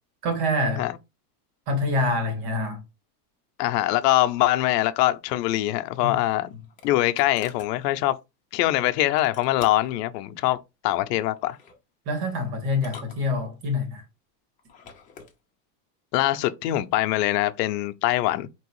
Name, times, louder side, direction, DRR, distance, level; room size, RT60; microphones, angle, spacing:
voice 1, 0.2-0.9 1.7-2.8 6.0-6.2 12.1-14.0, left 2 dB, 65° right, 2.4 m, -26 dB
voice 2, 3.6-6.5 6.8-8.2 8.5-11.6 16.1-18.5, left 15 dB, 90° left, 0.6 m, -23 dB
sound 1, 6.3-7.7 9.2-10.0 11.4-11.8 12.7-13.8 14.6-15.3, left 6 dB, 15° left, 0.6 m, -46 dB
4.6 x 3.0 x 3.0 m
cardioid pair, 165°, 47 cm